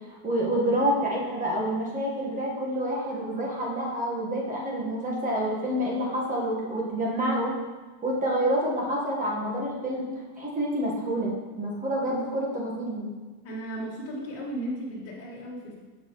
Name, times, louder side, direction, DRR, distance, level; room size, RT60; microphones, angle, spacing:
voice 1, 0.2-7.5 8.0-10.0 10.4-13.0, right 1 dB, 15° right, -4 dB, 1.5 m, -28 dB
voice 2, 13.4-15.7, right 1 dB, 30° left, -5 dB, 2.2 m, -35 dB
6.6 x 6.5 x 3.1 m, 1.3 s
supercardioid pair, 140°, 45 cm